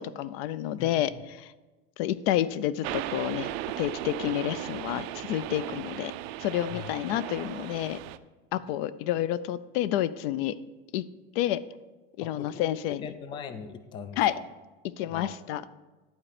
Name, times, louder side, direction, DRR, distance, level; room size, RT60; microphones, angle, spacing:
voice 1, 0.0-1.1 1.4-1.5 2.0-6.1 6.4-8.0 8.5-10.6 10.9-11.0 11.4-11.6 12.2-13.0 14.2-14.3 15.0-15.6, left 12 dB, 75° left, 16 dB, 0.5 m, -29 dB
voice 2, 0.8-1.2 6.7-6.9 12.2-12.6 12.9-14.5 15.1-15.3, left 6 dB, 15° left, 11 dB, 0.3 m, -41 dB
sound 1, 2.8-8.2, right 14 dB, 85° right, 0.5 m, -36 dB
11.5 x 4.3 x 5.0 m, 1.2 s
cardioid pair, 150°, 30 cm